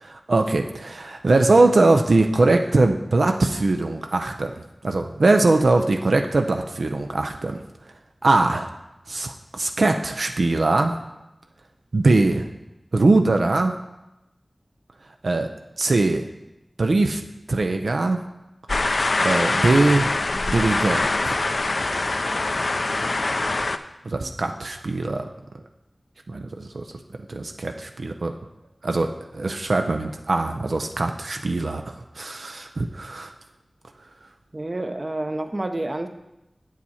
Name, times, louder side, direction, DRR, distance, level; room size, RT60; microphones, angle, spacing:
voice 1, 0.0-4.5 4.8-7.6 8.2-8.7 9.1-10.9 11.9-12.5 12.9-13.7 15.2-15.5 15.8-16.2 16.8-17.2 17.5-18.2 19.2-21.4 24.1-25.3 26.3-26.8 27.3-28.3 28.8-33.3, right 2 dB, 85° right, 4 dB, 0.4 m, -21 dB
sound 1, 18.7-23.8, left 2 dB, 70° left, 0.4 m, -23 dB
voice 2, 34.5-36.1, right 1 dB, 40° right, 7 dB, 0.7 m, -29 dB
7.4 x 7.2 x 4.2 m, 0.93 s
wide cardioid pair, 50°, 0 cm